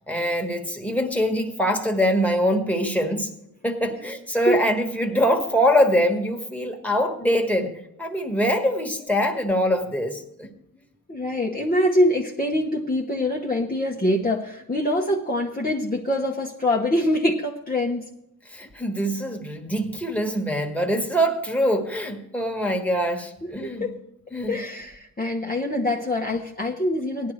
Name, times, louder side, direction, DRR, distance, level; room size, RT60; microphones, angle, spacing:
voice 1, 0.1-3.3 3.6-7.7 8.0-10.5 18.5-23.9 24.3-24.6, equal, 5° left, 2 dB, 1.6 m, -23 dB
voice 2, 11.1-18.1 23.4-23.9 24.5-27.3, left 1 dB, 25° left, -2 dB, 1.0 m, -24 dB
18.0 x 11.5 x 3.2 m, 0.82 s
wide cardioid pair, 100°, 36 cm